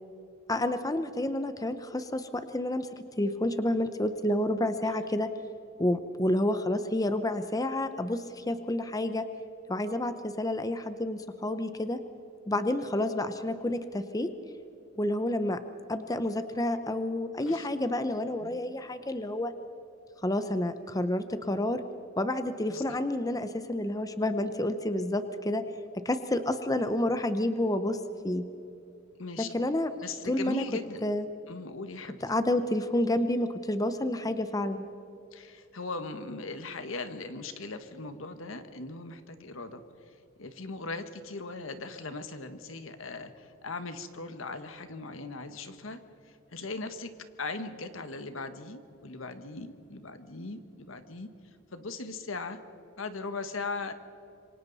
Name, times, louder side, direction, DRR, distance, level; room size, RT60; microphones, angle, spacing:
voice 1, 0.5-2.9 3.2-5.3 5.8-9.3 9.7-12.0 12.5-14.3 15.0-15.6 15.9-19.5 20.2-21.8 22.2-25.6 25.9-28.4 29.4-29.9 30.2-30.6 31.0-31.3 32.2-34.9, left 1 dB, 15° left, 10 dB, 0.7 m, -29 dB
voice 2, 18.4-18.8 22.7-23.0 29.2-29.5 30.0-31.0 31.5-32.2 35.3-39.8 40.4-46.0 46.5-47.1 47.4-51.3 51.7-52.6 53.0-53.9, left 3 dB, 80° left, 9 dB, 1.4 m, -39 dB
27.0 x 24.0 x 4.1 m, 2.9 s
head